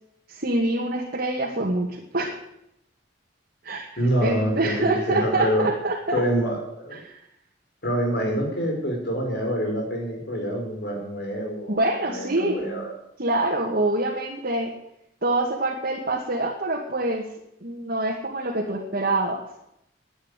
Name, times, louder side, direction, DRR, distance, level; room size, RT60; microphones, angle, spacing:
voice 1, 0.3-2.3 3.6-6.2 6.9-7.1 11.7-12.6 13.2-14.7 15.2-17.3 17.6-19.4, right 2 dB, 55° right, -2 dB, 2.1 m, -25 dB
voice 2, 4.0-5.7 6.1-7.0 7.8-11.8 12.1-12.9, equal, 65° left, 1 dB, 5.2 m, -26 dB
11.0 x 9.7 x 9.8 m, 0.80 s
head